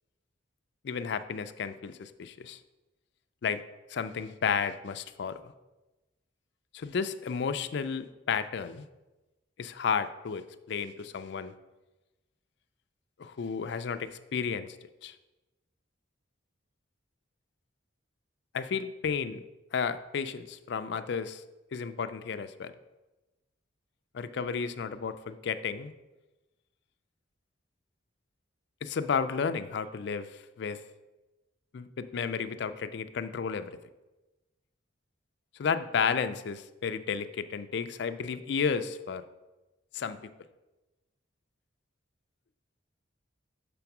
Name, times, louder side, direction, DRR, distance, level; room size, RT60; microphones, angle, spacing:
voice 1, 0.8-2.6 3.4-3.6 3.9-5.5 6.7-8.8 9.6-11.5 13.2-14.8 15.0-15.1 18.5-19.4 19.7-21.4 21.7-22.7 24.1-25.9 28.8-30.8 31.7-33.8 35.5-39.2 39.9-40.2, left 6 dB, 60° left, 11 dB, 0.4 m, -32 dB
6.9 x 3.5 x 5.9 m, 1.1 s
head